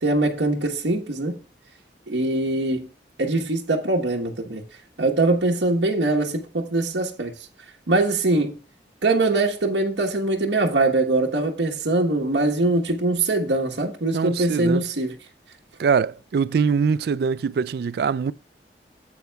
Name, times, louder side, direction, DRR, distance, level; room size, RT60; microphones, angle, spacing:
voice 1, 0.0-1.4 2.1-2.9 3.2-4.6 5.0-7.5 7.9-8.6 9.0-15.2, right 2 dB, 75° right, 1.2 m, -22 dB
voice 2, 14.1-14.8 15.8-18.3, right 6 dB, 60° right, 0.3 m, -23 dB
13.5 x 8.3 x 2.3 m
head